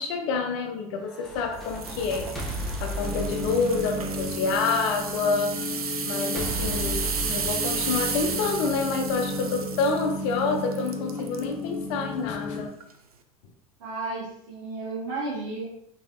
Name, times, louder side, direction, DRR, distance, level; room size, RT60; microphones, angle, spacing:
voice 1, 0.0-5.6 6.0-12.7, left 4 dB, 55° left, 4 dB, 0.7 m, -28 dB
sound 1, 1.1-5.2 6.4-9.2, equal, ahead, 0.8 m, -35 dB
sound 2, 1.6-11.5 12.0-12.3 12.8-12.9, right 6 dB, 80° right, 0.4 m, -33 dB
sound 3, 3.0-12.7, left 2 dB, 30° left, 1.3 m, -34 dB
voice 2, 13.8-15.7, right 3 dB, 60° right, -9 dB, 1.4 m, -33 dB
3.8 x 3.1 x 2.7 m, 0.72 s
figure-of-eight pair, 75°, 19 cm